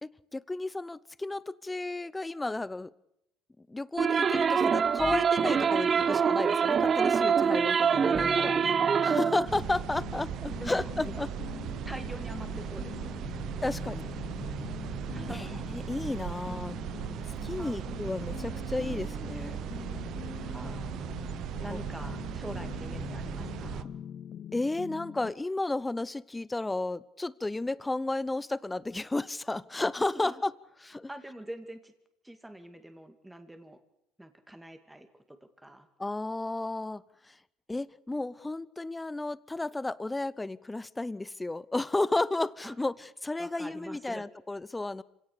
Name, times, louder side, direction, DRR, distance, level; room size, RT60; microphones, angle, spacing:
voice 1, 0.0-2.9 3.7-8.6 9.0-11.3 13.6-14.2 15.3-16.8 17.4-19.6 21.7-21.8 24.5-30.5 30.8-31.1 36.0-37.3 37.7-45.0, left 2 dB, 10° left, 20 dB, 0.7 m, -33 dB
sound 1, 4.0-9.4, right 6 dB, 35° right, 0.7 m, -25 dB
sound 2, 7.9-25.3, left 9 dB, 45° left, 0.9 m, -42 dB
voice 2, 8.0-9.1 10.6-10.9 11.2-11.3 11.8-13.4 15.1-15.6 17.6-18.0 20.4-21.0 21.6-23.9 30.0-30.4 31.1-31.9 32.2-33.8 34.2-35.9 42.6-42.7 43.4-44.3, right 1 dB, 5° right, 8 dB, 2.4 m, -45 dB
sound 3, 9.4-23.8, right 11 dB, 60° right, 1.0 m, -38 dB
26.0 x 17.5 x 6.9 m, 0.81 s
supercardioid pair, 105°, 0 cm